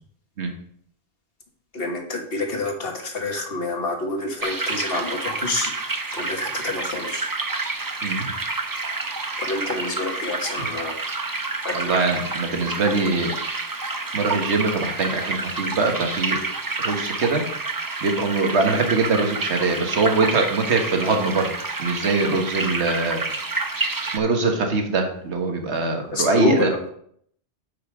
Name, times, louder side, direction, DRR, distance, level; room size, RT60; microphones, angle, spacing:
voice 1, 1.7-5.7 6.1-7.3 9.4-11.0 11.6-11.9 26.1-26.9, left 2 dB, 60° left, 3 dB, 1.7 m, -27 dB
sound 1, 4.4-24.2, right 3 dB, 25° right, 0.6 m, -29 dB
voice 2, 8.0-8.3 10.6-10.7 11.7-13.3 14.1-16.4 16.8-17.4 18.0-21.5 21.8-23.2 24.0-26.7, right 3 dB, 85° right, 4 dB, 1.6 m, -23 dB
8.8 x 5.7 x 4.9 m, 0.65 s
omnidirectional pair, 1.1 m